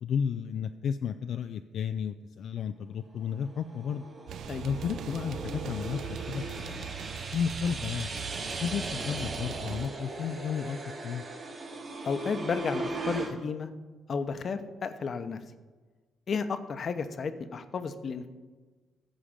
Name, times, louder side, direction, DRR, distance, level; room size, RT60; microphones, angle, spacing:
voice 1, 0.0-4.0 4.6-6.0 6.3-6.9 7.3-8.1 8.6-11.2, left 7 dB, 70° left, 8 dB, 0.4 m, -33 dB
sound 1, 3.2-13.3, right 2 dB, 40° right, 2.3 m, -38 dB
sound 2, 4.3-9.9, right 9 dB, 70° right, 0.4 m, -40 dB
voice 2, 12.0-13.7 14.1-15.4 16.3-18.3, left 5 dB, 50° left, 9 dB, 0.9 m, -32 dB
14.5 x 5.0 x 7.4 m, 1.3 s
cardioid pair, 90°, 0 cm